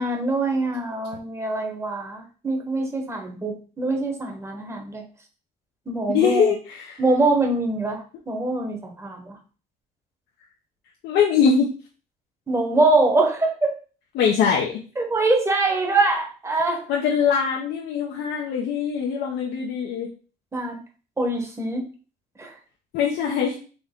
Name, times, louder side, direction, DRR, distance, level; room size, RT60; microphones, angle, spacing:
voice 1, 0.0-5.0 5.9-6.5 7.0-9.4 12.5-13.7 15.0-16.9 20.5-20.8 21.2-21.8 22.4-22.6, right 2 dB, 15° right, 2 dB, 1.1 m, -23 dB
voice 2, 6.1-7.0 11.0-11.7 14.1-14.8 16.9-20.1 22.9-23.6, left 6 dB, 80° left, -2 dB, 0.9 m, -22 dB
4.0 x 3.5 x 3.7 m, 0.37 s
cardioid pair, 110°, 17 cm